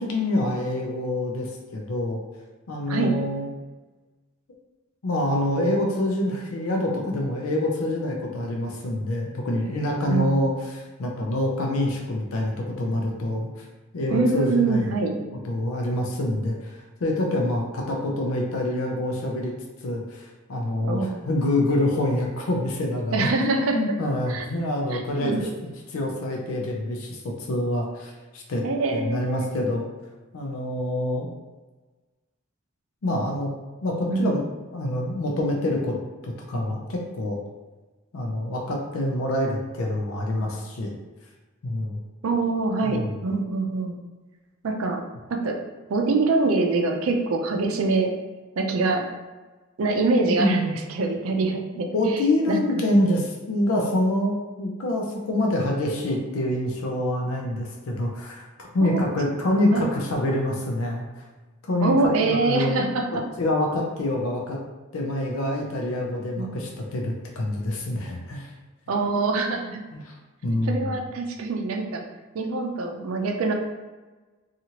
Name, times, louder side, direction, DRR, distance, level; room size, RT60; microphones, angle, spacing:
voice 1, 0.0-2.2 2.7-3.5 5.0-13.6 13.9-14.9 15.4-19.5 19.8-25.3 25.6-28.6 28.9-29.9 30.3-31.3 33.0-33.5 33.8-35.9 36.2-37.4 38.1-40.9 41.6-42.0 42.8-43.1 50.4-50.8 51.7-58.5 58.7-61.3 61.7-62.8 63.4-64.6 64.9-68.5 69.9-70.1 70.4-70.9, left 1 dB, 75° left, 0 dB, 0.5 m, -26 dB
voice 2, 10.1-10.4 14.1-15.1 20.8-21.5 23.1-23.8 24.3-24.5 24.9-25.4 28.6-29.7 34.1-34.5 42.2-44.0 44.6-45.0 45.3-45.6 45.9-48.1 48.6-49.0 49.8-52.2 52.5-52.6 58.8-59.0 59.7-59.9 61.8-63.2 66.4-66.6 68.9-69.8 70.6-72.0 72.3-73.5, right 3 dB, 75° right, 2 dB, 0.4 m, -24 dB
2.8 x 2.4 x 2.8 m, 1.2 s
head